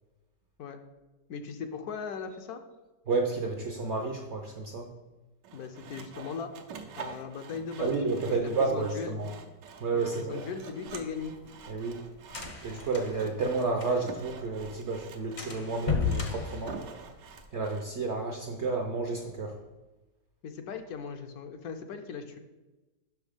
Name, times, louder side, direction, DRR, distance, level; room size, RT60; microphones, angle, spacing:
voice 1, 1.3-2.6 5.5-6.5 7.0-8.0 8.3-9.1 9.9-11.3 20.4-22.4, left 6 dB, 70° left, 6 dB, 1.0 m, -38 dB
voice 2, 3.1-4.9 7.8-9.3 9.8-10.4 11.7-12.0 12.6-16.8 17.5-19.6, right 3 dB, 60° right, 2 dB, 0.7 m, -31 dB
Sawing, 5.4-17.9, right 6 dB, 85° right, 1.3 m, -47 dB
sound 1, 10.9-14.3 14.6-14.7 14.9-15.1 15.4-17.4, left 5 dB, 40° left, 0.6 m, -34 dB
6.2 x 5.7 x 5.0 m, 1.1 s
omnidirectional pair, 1.8 m